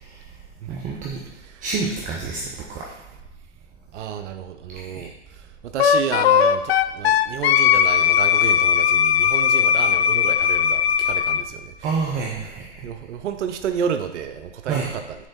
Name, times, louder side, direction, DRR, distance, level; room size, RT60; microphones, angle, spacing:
voice 1, 0.7-1.2 1.6-2.8 4.8-5.0 11.8-12.8 14.7-14.9, right 4 dB, 20° right, -2 dB, 0.7 m, -28 dB
voice 2, 3.9-11.9 12.8-15.0, right 7 dB, 70° right, 8 dB, 0.6 m, -31 dB
Wind instrument woodwind instrument, 5.8-11.4, left 9 dB, 60° left, 0.5 m, -18 dB
7.1 x 3.4 x 4.1 m, 0.94 s
hypercardioid pair, 115°, 36 cm